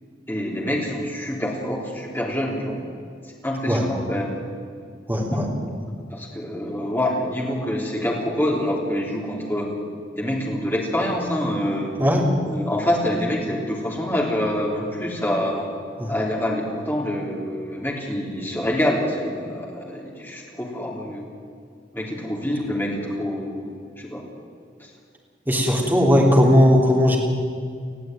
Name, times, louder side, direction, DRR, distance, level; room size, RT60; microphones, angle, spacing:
voice 1, 0.3-2.8 3.4-4.4 5.3-5.4 6.1-9.7 10.1-11.9 12.5-15.7 16.1-21.2 21.9-23.7 24.0-24.2 25.8-25.9, left 1 dB, 10° left, -2 dB, 3.4 m, -26 dB
voice 2, 5.1-5.5 12.0-12.3 16.0-16.1 25.5-27.2, left 1 dB, 10° right, -2 dB, 3.3 m, -17 dB
20.5 x 14.0 x 9.2 m, 2.2 s
head